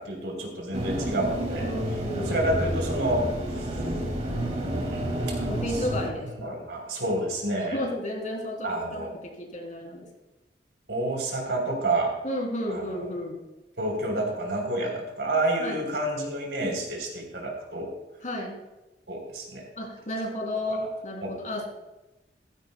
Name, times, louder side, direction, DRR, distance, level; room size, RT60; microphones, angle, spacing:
voice 1, 0.0-1.7 2.2-3.7 4.6-5.4 6.4-7.8 8.6-9.1 10.9-12.1 12.7-13.1 13.8-17.9 19.1-19.7 20.7-20.8 21.2-21.3, right 1 dB, 75° right, 1 dB, 3.5 m, -29 dB
sound 1, 0.7-6.1, right 1 dB, 40° right, 2.4 m, -30 dB
voice 2, 1.6-2.4 5.5-6.6 7.7-10.1 12.2-13.4 15.6-15.8 18.2-18.6 19.8-21.6, left 1 dB, 45° left, 0 dB, 3.0 m, -32 dB
15.0 x 15.0 x 2.2 m, 1.0 s
head